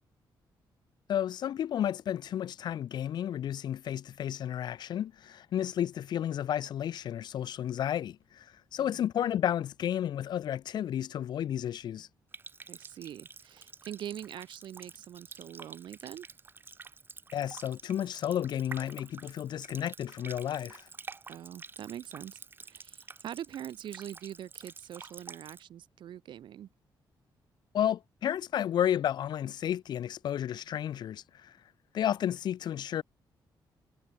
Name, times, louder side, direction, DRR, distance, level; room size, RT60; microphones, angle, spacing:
voice 1, 1.1-8.5 8.7-12.1 17.3-20.9 27.7-31.5 31.9-33.0, left 10 dB, 60° left, 0.5 m, -32 dB
Water tap faucet, 12.3-25.6, right 4 dB, 25° right, 5.1 m, -49 dB
voice 2, 12.7-16.3 21.3-26.7, right 11 dB, 70° right, 1.4 m, -43 dB
wide cardioid pair, 160°, 8 cm